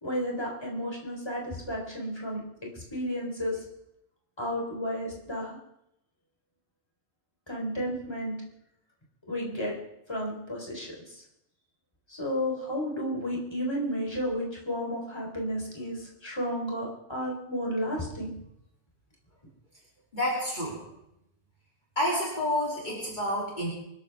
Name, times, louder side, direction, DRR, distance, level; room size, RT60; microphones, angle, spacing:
voice 1, 0.0-2.4 2.9-3.6 4.4-5.6 7.5-8.3 9.3-9.7 10.1-10.9 12.1-18.3, equal, 20° left, -2 dB, 3.9 m, -32 dB
voice 2, 20.1-20.9 21.9-23.7, left 1 dB, 35° left, -4 dB, 3.2 m, -29 dB
24.0 x 13.5 x 3.5 m, 0.81 s
omnidirectional pair, 1.4 m